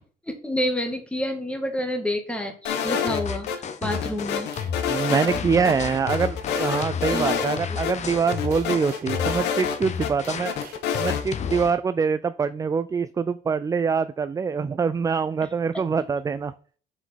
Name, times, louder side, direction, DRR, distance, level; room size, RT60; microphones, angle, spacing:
voice 1, 0.2-4.5 7.1-7.4, equal, 5° left, 4 dB, 1.8 m, -29 dB
sound 1, 2.6-3.6 3.9-5.4 5.6-5.7 6.1-7.6 7.8-7.9 8.3-10.1 10.4-11.2, left 7 dB, 90° left, 1.4 m, -27 dB
sound 2, 2.7-11.7, left 7 dB, 45° left, 1.0 m, -32 dB
sound 3, 4.5-5.4 6.6-6.8 7.1-7.4 8.5-9.2 10.2-10.9, right 6 dB, 60° right, 2.1 m, -47 dB
voice 2, 4.9-10.5 11.0-16.5, right 5 dB, 20° right, 14 dB, 0.4 m, -24 dB
6.4 x 5.3 x 5.7 m, 0.44 s
cardioid pair, 110°, 17 cm